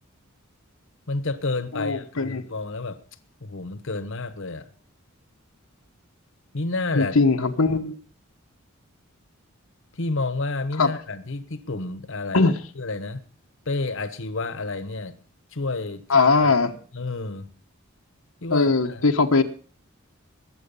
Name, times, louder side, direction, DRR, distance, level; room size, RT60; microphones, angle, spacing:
voice 1, 1.1-3.0 3.4-4.7 6.5-7.2 9.9-13.2 13.7-15.1 15.5-16.6 16.9-17.5 18.4-19.0, left 3 dB, 65° left, 12 dB, 1.1 m, -30 dB
voice 2, 1.7-2.4 6.9-7.9 10.8-10.9 12.3-12.5 16.1-16.7 18.5-19.4, left 3 dB, 85° left, 4 dB, 1.1 m, -20 dB
21.0 x 7.8 x 5.4 m, 0.40 s
head